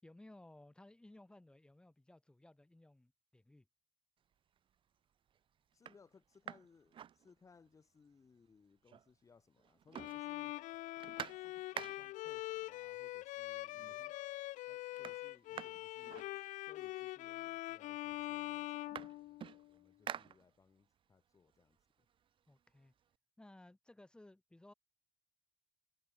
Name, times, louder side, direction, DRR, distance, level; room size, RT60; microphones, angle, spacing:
voice 1, 0.0-3.7 22.5-22.9 23.4-24.7, left 1 dB, 5° left, 4.6 m, -59 dB
sound 1, 4.3-4.8 5.3-5.4 5.7-7.8 8.1-8.2 8.5-9.3 9.6-12.3 13.3-13.4 13.7-14.2 14.5-16.9 17.7-17.8 18.1-20.9 21.3-23.1, right 9 dB, 35° right, 1.8 m, -50 dB
voice 2, 5.7-10.6 11.4-14.0 15.0-22.0, left 5 dB, 20° left, 7.9 m, -66 dB
Bowed string instrument, 9.9-19.8, left 17 dB, 65° left, 0.7 m, -44 dB
cardioid pair, 150°, 14 cm